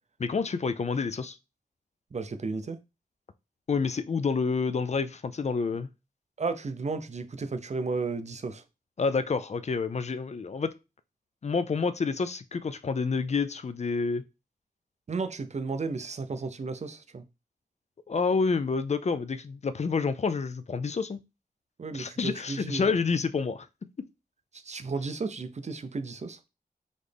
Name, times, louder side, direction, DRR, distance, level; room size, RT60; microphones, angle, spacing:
voice 1, 0.2-1.4 3.7-5.9 9.0-10.7 11.4-14.2 18.1-21.2 21.9-23.7, left 4 dB, 45° left, 0.4 m, -28 dB
voice 2, 2.1-2.8 6.4-8.6 15.1-17.2 21.8-22.9 24.5-26.4, right 4 dB, 45° right, 0.5 m, -33 dB
4.0 x 3.1 x 3.4 m
wide cardioid pair, 85°, 16 cm